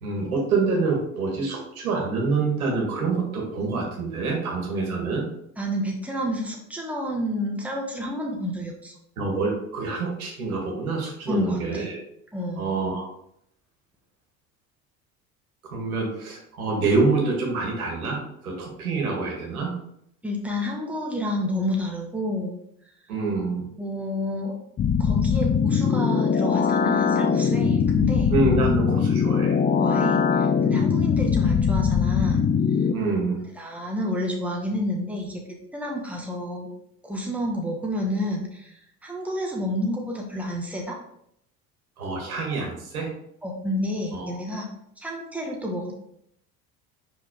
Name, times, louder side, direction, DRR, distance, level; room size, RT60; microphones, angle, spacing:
voice 1, 0.0-5.3 9.2-12.0 12.6-13.1 15.6-19.7 23.1-23.6 28.3-29.6 31.0-31.1 32.9-33.4 42.0-43.1 44.1-44.3, right 3 dB, 85° right, -1 dB, 1.9 m, -26 dB
voice 2, 5.6-8.9 11.3-11.9 12.3-12.8 20.2-22.6 23.8-24.6 25.0-28.3 29.8-32.4 33.6-35.4 35.7-36.7 37.0-41.0 43.4-44.7 45.0-45.9, left 1 dB, 5° right, -1 dB, 1.7 m, -29 dB
sound 1, 24.8-32.9, left 6 dB, 20° left, 0.4 m, -21 dB
5.7 x 5.0 x 3.7 m, 0.74 s
hypercardioid pair, 70°, 43 cm